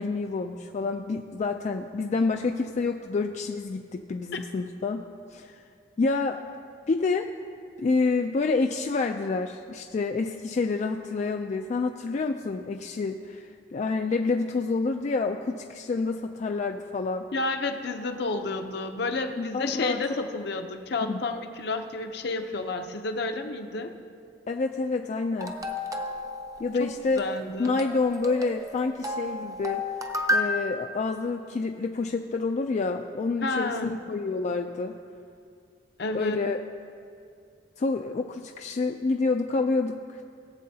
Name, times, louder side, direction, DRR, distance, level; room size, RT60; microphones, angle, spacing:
voice 1, 0.0-5.0 5.3-5.6 6.0-6.4 6.9-7.3 7.8-17.3 19.4-20.0 21.0-21.2 24.5-25.5 26.6-27.2 27.6-29.9 30.3-35.0 36.1-36.6 37.8-40.2, left 3 dB, 40° left, 4 dB, 0.3 m, -28 dB
voice 2, 17.3-23.9 26.7-26.9 27.2-27.8 33.4-33.9 36.0-36.4, left 3 dB, 65° left, 6 dB, 0.7 m, -30 dB
sound 1, 25.4-30.5, left 1 dB, 20° right, 0.6 m, -32 dB
19.0 x 7.6 x 2.8 m, 2.4 s
head